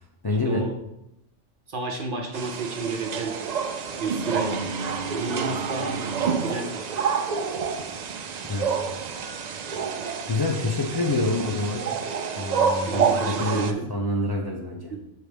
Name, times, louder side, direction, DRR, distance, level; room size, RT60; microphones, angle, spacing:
voice 1, 0.2-0.7 8.4-8.7 10.3-11.9 12.4-14.9, left 2 dB, 30° left, -1 dB, 0.4 m, -27 dB
voice 2, 1.7-3.3 4.0-4.7 5.1-7.1 12.9-13.9, right 3 dB, 55° right, 3 dB, 0.7 m, -31 dB
sound 1, 2.3-13.7, right 6 dB, 85° right, 0.3 m, -28 dB
6.1 x 3.2 x 5.1 m, 0.84 s
omnidirectional pair, 1.3 m